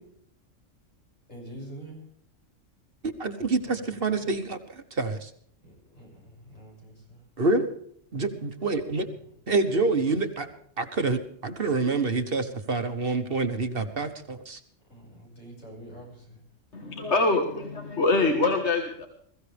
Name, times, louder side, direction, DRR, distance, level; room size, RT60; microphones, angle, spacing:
voice 1, 1.3-2.0 3.7-3.8 5.6-7.2 14.9-16.4, right 1 dB, 85° left, -1 dB, 7.2 m, -45 dB
voice 2, 3.2-4.6 4.9-5.3 7.4-7.7 8.1-9.1 9.5-10.5 10.8-14.6, right 3 dB, 50° right, 8 dB, 1.5 m, -27 dB
voice 3, 16.7-19.1, left 3 dB, 65° left, 4 dB, 1.8 m, -24 dB
21.5 x 15.0 x 3.4 m, 0.66 s
omnidirectional pair, 1.3 m